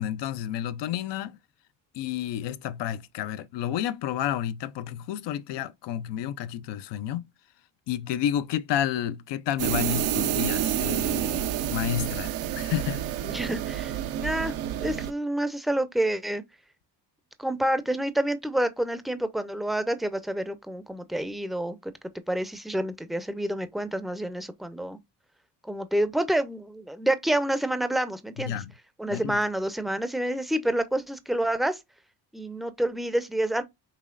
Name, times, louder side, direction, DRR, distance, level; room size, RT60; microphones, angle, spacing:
voice 1, 0.0-1.4 1.9-7.2 7.9-13.0 28.4-28.7 29.1-29.4, left 10 dB, 60° left, 0.6 m, -30 dB
sound 1, 9.6-15.1, right 11 dB, 80° right, 0.7 m, -29 dB
voice 2, 13.3-14.5 14.8-16.4 17.4-21.9 22.3-25.0 25.6-28.6 29.0-31.8 32.3-33.6, right 1 dB, ahead, 0.6 m, -28 dB
5.8 x 3.1 x 2.4 m
supercardioid pair, 70°, 48 cm